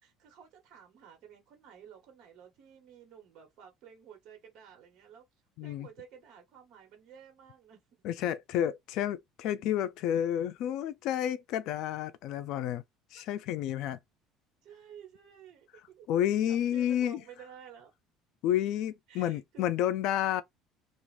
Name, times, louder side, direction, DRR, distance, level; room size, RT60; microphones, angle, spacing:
voice 1, 0.0-5.2 5.6-7.8 14.6-16.1 16.5-17.9 19.1-19.7, right 8 dB, 55° right, 1.1 m, -53 dB
voice 2, 5.6-5.9 8.0-12.8 13.1-14.0 16.1-17.2 18.4-20.4, left 11 dB, 65° left, 0.4 m, -30 dB
2.5 x 2.4 x 3.2 m
cardioid pair, 140°, 0 cm